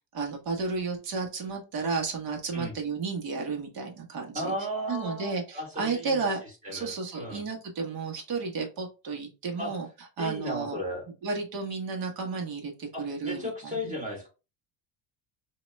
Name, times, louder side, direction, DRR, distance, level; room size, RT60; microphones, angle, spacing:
voice 1, 0.1-4.5 4.9-6.4 6.7-9.9 10.2-10.8 11.2-13.9, right 4 dB, 55° right, 1 dB, 1.6 m, -32 dB
voice 2, 4.3-6.3 6.6-7.4 9.6-9.7 10.2-11.1 12.9-14.3, equal, 15° right, -2 dB, 2.3 m, -35 dB
4.9 x 2.9 x 2.3 m, 0.30 s
cardioid pair, 110°, 43 cm